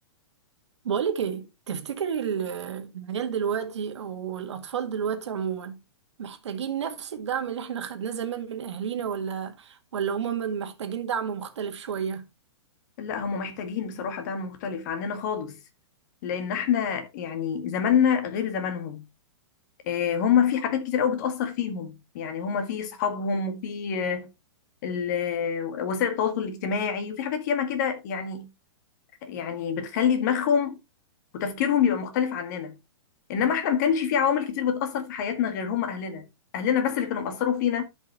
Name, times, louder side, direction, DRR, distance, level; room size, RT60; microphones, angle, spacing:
voice 1, 0.8-5.8 6.2-12.3, right 7 dB, 80° right, 1.8 m, -31 dB
voice 2, 13.0-15.6 16.2-19.1 19.9-24.3 24.8-28.5 29.2-30.8 31.3-32.8 33.3-36.3 36.5-37.8, left 7 dB, 40° left, 1.8 m, -26 dB
12.5 x 5.5 x 3.0 m
hypercardioid pair, 165°, 15 cm